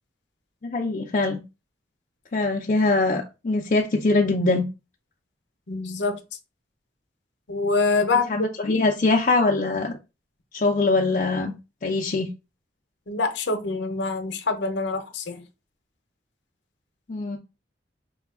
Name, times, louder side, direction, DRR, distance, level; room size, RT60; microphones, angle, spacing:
voice 1, 0.6-1.4 2.3-4.7 8.3-10.0 10.5-11.5 11.8-12.3 17.1-17.4, left 3 dB, 45° left, 0.5 m, -22 dB
voice 2, 5.7-6.2 7.5-8.7 13.1-15.4, left 3 dB, 70° left, 0.8 m, -25 dB
4.9 x 2.3 x 3.6 m
head